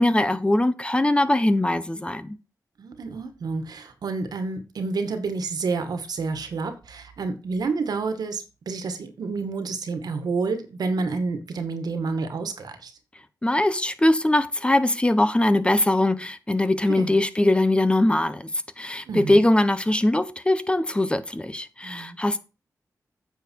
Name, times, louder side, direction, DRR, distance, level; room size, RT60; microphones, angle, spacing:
voice 1, 0.0-2.4 13.4-18.5 18.8-22.4, left 1 dB, 15° left, 1.0 m, -21 dB
voice 2, 2.8-12.9 16.9-17.1 19.1-19.4 21.8-22.2, right 4 dB, 80° right, 1.9 m, -29 dB
9.0 x 7.0 x 4.7 m
cardioid pair, 75°, 7 cm